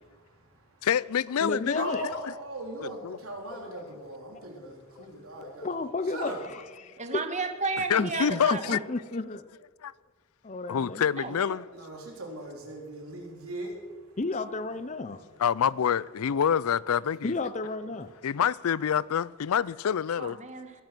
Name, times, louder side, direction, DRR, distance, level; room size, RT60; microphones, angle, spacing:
voice 1, 0.0-0.9 1.7-5.7 6.1-6.4 11.7-14.2, right 1 dB, 75° right, 4.0 m, -39 dB
voice 2, 0.8-2.2 3.0-3.2 7.9-8.8 9.8-9.9 10.7-11.6 15.4-17.3 18.2-20.4, left 8 dB, 80° left, 0.4 m, -27 dB
voice 3, 1.4-2.1 3.5-3.9 5.0-6.3 6.8-7.2 8.0-9.5 10.4-11.0 14.2-15.2 17.2-18.1, left 3 dB, 35° left, 0.7 m, -33 dB
voice 4, 7.0-8.8 11.1-11.6 20.2-20.7, right 3 dB, 35° right, 1.6 m, -33 dB
21.5 x 10.5 x 6.1 m
head